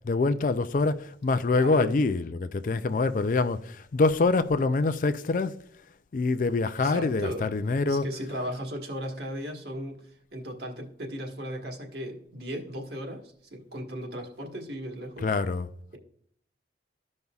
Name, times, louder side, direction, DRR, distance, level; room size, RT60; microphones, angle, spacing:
voice 1, 0.0-5.6 6.1-8.2 15.2-15.7, left 3 dB, 45° left, 0.4 m, -25 dB
voice 2, 1.5-1.9 6.8-7.5 7.9-15.3, equal, 65° right, 1.4 m, -36 dB
13.5 x 5.3 x 2.3 m
head